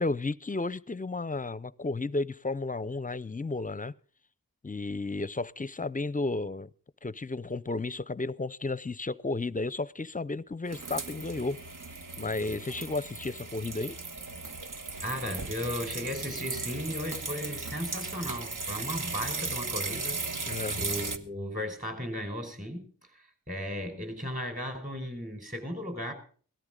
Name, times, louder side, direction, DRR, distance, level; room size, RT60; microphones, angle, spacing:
voice 1, 0.0-3.9 4.6-6.7 7.0-11.6 12.2-14.0 20.5-20.8, left 3 dB, 25° left, 0.6 m, -33 dB
sound 1, 10.7-21.2, right 3 dB, 65° right, 1.3 m, -37 dB
voice 2, 15.0-20.2 20.8-26.1, equal, 25° right, 5.1 m, -36 dB
18.0 x 13.0 x 3.8 m
wide cardioid pair, 60°, 34 cm